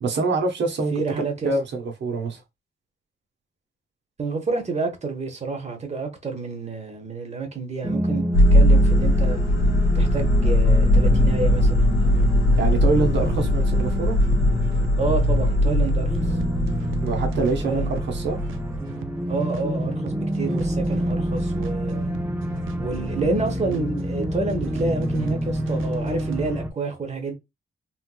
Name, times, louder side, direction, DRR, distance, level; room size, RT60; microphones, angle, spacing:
voice 1, 0.0-2.4 12.6-14.2 17.0-18.4, right 3 dB, 60° right, 0.9 m, -25 dB
voice 2, 0.9-1.5 4.2-9.4 9.9-11.9 15.0-16.4 17.6-17.9 19.3-22.1 22.8-27.3, right 3 dB, 35° right, 1.0 m, -29 dB
sound 1, 7.8-26.7, equal, 10° right, 0.6 m, -29 dB
sound 2, 8.3-18.8, left 1 dB, 85° left, 1.1 m, -20 dB
sound 3, 12.0-26.6, right 8 dB, 85° right, 0.4 m, -40 dB
3.2 x 3.1 x 2.2 m
cardioid pair, 105°, 20 cm